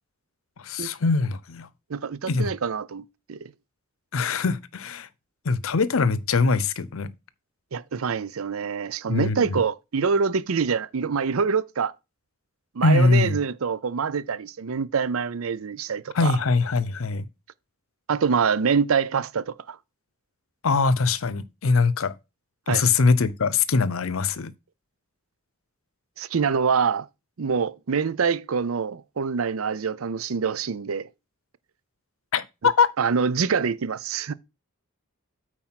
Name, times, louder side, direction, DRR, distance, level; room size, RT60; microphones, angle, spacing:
voice 1, 0.6-1.7 2.3-2.5 4.1-5.1 5.5-7.1 9.1-9.6 12.8-13.4 16.1-17.3 20.6-22.1 22.7-24.5 32.3-32.9, left 4 dB, 75° left, 0.6 m, -22 dB
voice 2, 1.9-3.5 7.7-11.9 12.8-16.3 18.1-19.8 22.7-22.8 26.2-27.1 27.4-31.1 33.0-34.3, right 6 dB, 80° right, 0.6 m, -25 dB
8.7 x 4.5 x 5.8 m
head